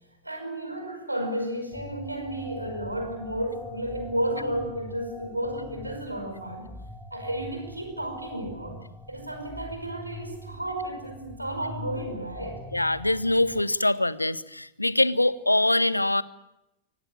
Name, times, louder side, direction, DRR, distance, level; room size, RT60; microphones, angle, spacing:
voice 1, 0.2-6.7 7.1-8.8 9.1-12.6, right 1 dB, 85° right, 5.2 m, -32 dB
sound 1, 1.7-13.6, left 1 dB, ahead, 2.1 m, -43 dB
voice 2, 12.7-16.2, left 1 dB, 85° left, 0.8 m, -23 dB
24.0 x 18.0 x 9.2 m
figure-of-eight pair, 90°, 0 cm